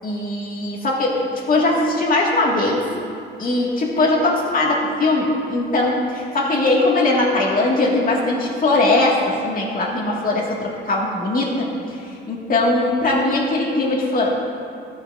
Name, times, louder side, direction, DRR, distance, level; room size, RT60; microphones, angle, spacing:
voice 1, 0.0-2.8 3.4-14.3, left 2 dB, 45° left, -2 dB, 2.1 m, -20 dB
13.5 x 9.6 x 2.7 m, 2.6 s
cardioid pair, 90°, 20 cm